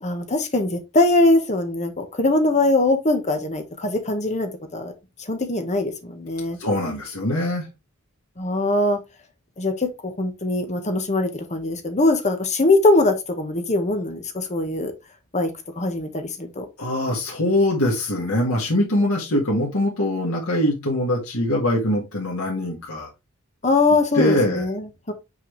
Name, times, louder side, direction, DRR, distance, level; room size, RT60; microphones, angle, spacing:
voice 1, 0.0-4.9 5.3-6.6 8.4-9.0 9.6-14.9 15.3-16.7 23.6-25.1, left 2 dB, 35° left, 1.4 m, -22 dB
voice 2, 6.6-7.7 16.8-23.1 24.1-24.7, left 1 dB, 80° left, 1.8 m, -22 dB
5.9 x 4.8 x 3.3 m
head